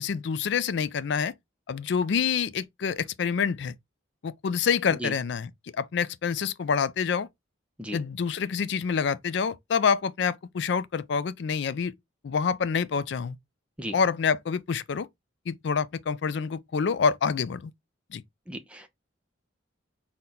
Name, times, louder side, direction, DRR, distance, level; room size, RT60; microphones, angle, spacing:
voice 1, 0.0-1.3 1.7-3.7 4.2-5.5 5.8-7.3 7.9-11.9 12.2-13.4 13.9-15.1 15.5-17.7 18.1-18.2, left 6 dB, 60° left, 0.3 m, -27 dB
voice 2, 18.5-18.9, equal, 5° right, 0.5 m, -35 dB
4.2 x 2.2 x 3.8 m
head